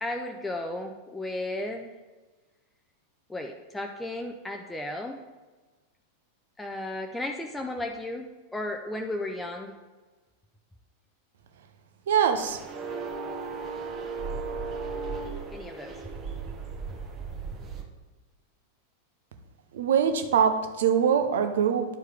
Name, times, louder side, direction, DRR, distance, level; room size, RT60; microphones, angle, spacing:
voice 1, 0.0-2.0 3.3-5.2 6.6-9.8 15.5-16.0, left 1 dB, 10° left, 2 dB, 0.5 m, -34 dB
voice 2, 12.1-12.6 19.7-21.9, right 7 dB, 60° right, 7 dB, 0.7 m, -23 dB
sound 1, 12.4-17.8, right 4 dB, 30° right, 1.1 m, -36 dB
10.5 x 4.5 x 3.4 m, 1.3 s
figure-of-eight pair, 90°, 0 cm